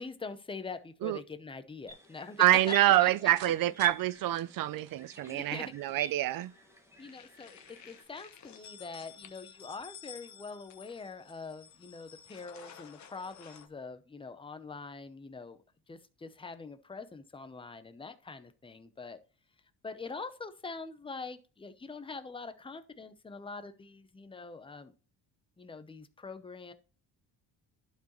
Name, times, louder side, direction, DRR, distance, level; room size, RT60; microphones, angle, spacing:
voice 1, 0.0-2.7 3.0-3.5 5.0-5.7 7.0-19.2 19.8-24.9 25.6-26.7, left 4 dB, 10° left, 0.7 m, -44 dB
sound 1, 1.9-8.0, right 2 dB, 5° right, 1.5 m, -48 dB
voice 2, 2.4-6.5, right 14 dB, 55° right, 0.5 m, -26 dB
sound 2, 2.4-3.5 3.8-3.9 4.3-5.7, right 8 dB, 85° right, 1.3 m, -48 dB
sound 3, 5.9-6.6 6.9-13.7, left 8 dB, 40° left, 1.0 m, -53 dB
11.5 x 4.7 x 3.0 m
cardioid pair, 120°, 42 cm